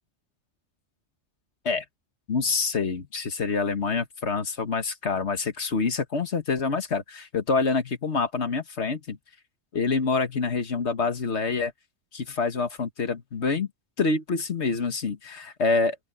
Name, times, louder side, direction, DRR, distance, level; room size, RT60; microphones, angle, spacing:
voice 1, 2.3-9.2 9.7-11.7 12.1-13.7 14.0-16.0, left 4 dB, 65° left, 1.8 m, -26 dB
open air
omnidirectional pair, 1.3 m